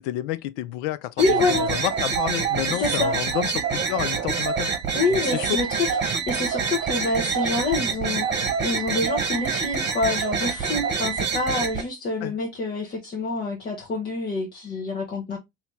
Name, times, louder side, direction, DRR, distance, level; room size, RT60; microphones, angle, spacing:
voice 1, 0.0-4.7 5.1-5.5 12.2-12.3, left 14 dB, 65° left, 0.5 m, -30 dB
voice 2, 1.2-1.7 2.8-3.2 4.9-15.4, left 3 dB, 30° left, 1.1 m, -27 dB
sound 1, 1.2-11.8, right 6 dB, 35° right, 1.1 m, -26 dB
2.9 x 2.7 x 3.4 m
hypercardioid pair, 70°, 30 cm